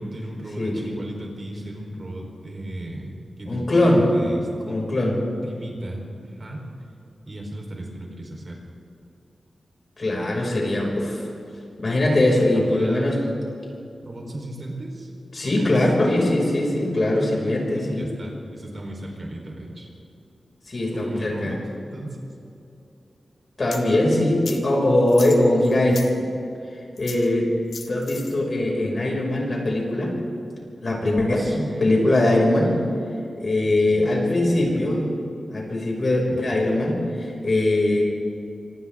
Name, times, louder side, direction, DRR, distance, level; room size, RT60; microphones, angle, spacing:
voice 1, 0.0-3.7 4.1-6.6 7.3-8.6 12.5-13.2 14.0-16.3 17.7-19.9 20.9-22.2 31.3-32.0 32.6-32.8 33.6-34.3 34.7-35.0 36.3-36.7, right 1 dB, 40° right, 0 dB, 4.3 m, -36 dB
voice 2, 3.4-4.0 4.7-5.2 10.0-11.2 11.8-13.1 15.3-18.1 20.7-21.6 23.6-26.0 27.0-27.5 27.9-30.2 30.8-31.5 31.8-32.7 33.4-35.1 35.5-38.0, left 1 dB, 45° left, -2 dB, 6.2 m, -21 dB
sound 1, 23.7-23.8 24.5-24.6 25.1-26.1 27.0-27.3 27.7-28.3, left 5 dB, 75° left, 1.8 m, -37 dB
26.5 x 26.0 x 3.8 m, 2.7 s
wide cardioid pair, 130°, 0 cm